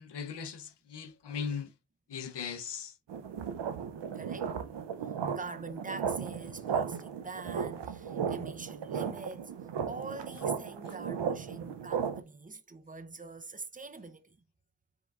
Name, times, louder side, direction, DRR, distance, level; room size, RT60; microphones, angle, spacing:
voice 1, 0.0-1.7 2.1-3.0, left 6 dB, 70° left, 0.7 m, -38 dB
sound 1, 3.1-12.2, right 7 dB, 80° right, 0.6 m, -35 dB
voice 2, 4.1-4.5 5.3-14.4, right 3 dB, 20° right, 0.5 m, -44 dB
4.9 x 3.5 x 2.3 m
wide cardioid pair, 65°, 42 cm